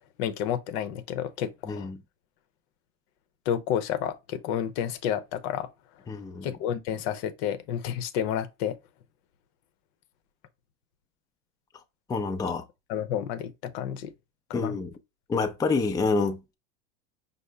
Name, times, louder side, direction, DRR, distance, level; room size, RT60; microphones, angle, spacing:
voice 1, 0.2-1.9 3.5-5.7 6.4-8.8 12.9-14.1 14.5-14.8, left 9 dB, 65° left, 0.7 m, -30 dB
voice 2, 1.7-2.0 6.1-6.5 12.1-12.6 14.5-14.9 15.3-16.5, left 4 dB, 10° left, 0.4 m, -27 dB
5.5 x 2.0 x 3.3 m
supercardioid pair, 110°, 35 cm